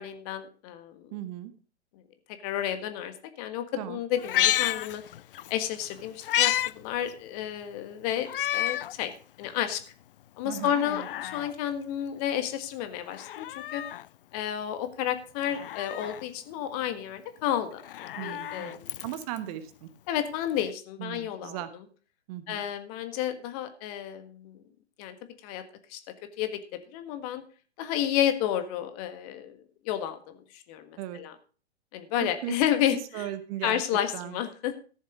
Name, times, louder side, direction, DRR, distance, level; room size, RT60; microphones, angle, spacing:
voice 1, 0.0-1.1 2.4-5.0 5.5-9.1 9.4-9.8 10.4-13.8 14.3-19.0 20.1-21.6 22.5-24.6 25.0-25.1 25.4-25.6 25.9-26.0 26.4-26.6 26.9-27.4 27.8-29.6 29.8-31.3 31.9-33.3 33.6-34.7, left 11 dB, 35° left, 10 dB, 1.6 m, -31 dB
voice 2, 1.1-1.5 3.8-4.0 10.4-11.1 18.1-18.8 19.0-19.9 21.0-21.7 22.3-22.6 31.0-31.2 32.2-32.5 33.1-33.8 34.1-34.4, right 13 dB, 35° right, 12 dB, 1.1 m, -37 dB
Meow, 4.2-5.5 5.9-6.7 7.1-7.2 8.2-8.9 9.4-9.5 10.5-11.5 13.1-14.1 15.4-16.2 17.7-19.4 20.6-20.7, left 12 dB, 55° left, 0.4 m, -30 dB
14.0 x 7.2 x 4.9 m, 0.37 s
figure-of-eight pair, 115°, 33 cm